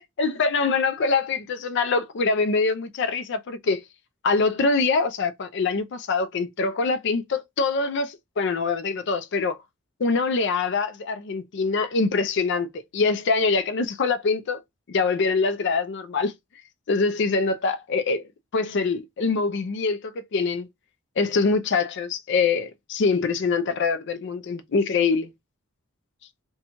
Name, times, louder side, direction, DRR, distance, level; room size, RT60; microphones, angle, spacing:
voice 1, 0.0-3.8 4.2-9.6 10.0-12.7 12.9-14.6 14.9-16.3 16.9-18.2 18.5-20.7 21.2-25.3, left 4 dB, 55° left, 0.4 m, -24 dB
2.9 x 2.2 x 2.7 m
head